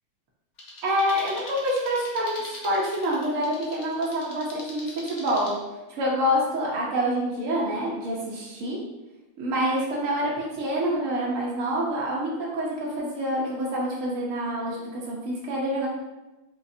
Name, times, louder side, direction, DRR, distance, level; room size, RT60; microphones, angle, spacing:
sound 1, 0.6-5.5, left 1 dB, 80° left, 0.6 m, -42 dB
voice 1, 0.8-5.5 6.0-8.8 9.4-15.9, equal, 70° right, -5 dB, 0.7 m, -27 dB
4.6 x 2.3 x 2.6 m, 1.0 s
omnidirectional pair, 2.3 m